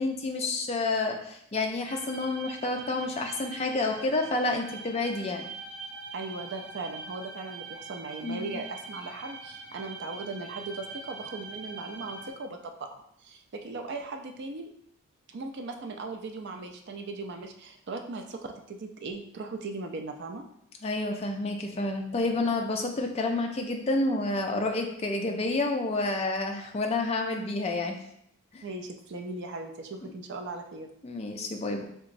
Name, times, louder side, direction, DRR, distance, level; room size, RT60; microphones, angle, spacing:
voice 1, 0.0-5.4 8.2-8.6 20.8-28.0 28.5-28.6 30.0-30.1 31.0-31.9, left 2 dB, 25° left, 3 dB, 0.3 m, -29 dB
sound 1, 1.9-12.3, right 4 dB, 90° right, 1.2 m, -43 dB
voice 2, 6.1-12.9 13.2-14.7 15.3-20.4 28.6-30.9, right 3 dB, 50° right, 4 dB, 0.4 m, -38 dB
3.6 x 2.9 x 2.5 m, 0.72 s
head